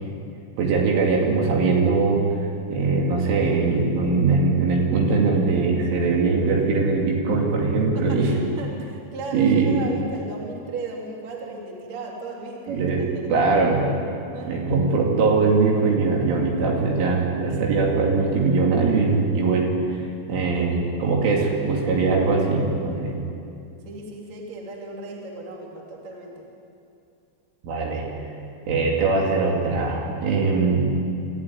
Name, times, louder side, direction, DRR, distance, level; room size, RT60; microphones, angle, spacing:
voice 1, 0.6-2.2 2.7-8.3 9.3-9.7 12.7-13.0 13.3-13.9 14.5-19.7 20.3-23.1 27.6-28.1 28.7-30.9, right 4 dB, 70° right, -1 dB, 5.0 m, -21 dB
voice 2, 7.9-13.3 14.3-14.8 20.5-20.8 23.9-26.5, right 3 dB, 35° right, -1 dB, 3.7 m, -36 dB
26.5 x 15.0 x 9.7 m, 2.6 s
omnidirectional pair, 6.0 m